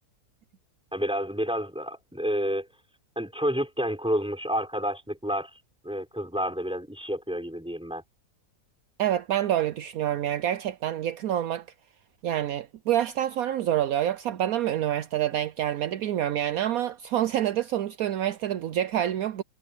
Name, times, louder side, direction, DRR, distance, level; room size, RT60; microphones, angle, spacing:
voice 1, 0.9-2.7 3.1-5.5 5.8-8.0, equal, 5° right, 5.0 m, -29 dB
voice 2, 9.0-11.7 12.2-19.4, right 11 dB, 70° right, 1.1 m, -27 dB
omnidirectional pair, 1.6 m